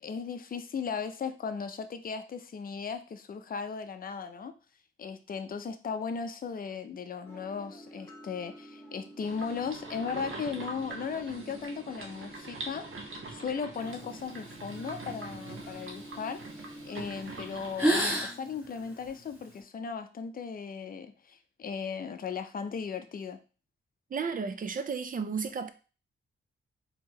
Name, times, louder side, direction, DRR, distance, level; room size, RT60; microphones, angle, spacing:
voice 1, 0.0-4.5 5.0-23.4, left 6 dB, 45° left, 0.5 m, -37 dB
sound 1, 7.2-17.6, equal, 10° left, 0.9 m, -49 dB
sound 2, 9.2-18.1, right 3 dB, 70° right, 1.0 m, -44 dB
sound 3, 13.8-16.5 17.1-17.3 17.6-19.6, equal, 10° right, 1.8 m, -33 dB
voice 2, 24.1-25.7, right 5 dB, 40° right, 0.5 m, -33 dB
4.5 x 2.9 x 2.9 m
cardioid pair, 105°, 21 cm